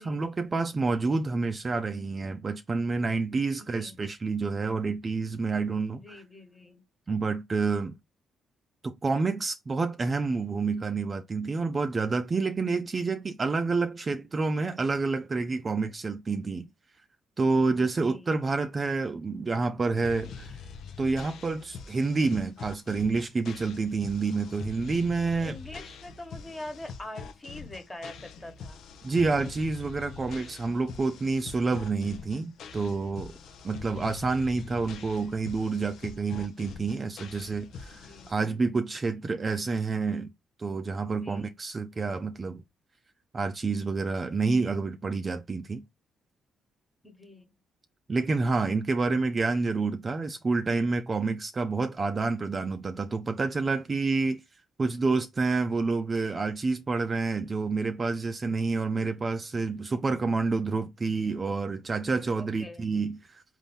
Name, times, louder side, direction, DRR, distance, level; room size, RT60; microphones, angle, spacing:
voice 1, 0.0-6.2 7.1-7.9 8.8-16.7 17.4-20.5 21.0-25.6 29.0-33.3 33.6-40.3 40.6-42.6 43.3-45.8 48.1-54.4 54.8-63.4, right 4 dB, 35° right, 0.5 m, -28 dB
voice 2, 3.6-4.0 6.0-6.8 18.0-18.3 25.4-28.8 33.7-34.1 37.9-38.3 41.2-41.5 47.0-47.5 62.4-62.9, left 1 dB, 15° left, 1.3 m, -44 dB
sound 1, 20.0-38.3, left 5 dB, 75° left, 0.6 m, -44 dB
3.9 x 2.7 x 3.5 m
cardioid pair, 90°, 0 cm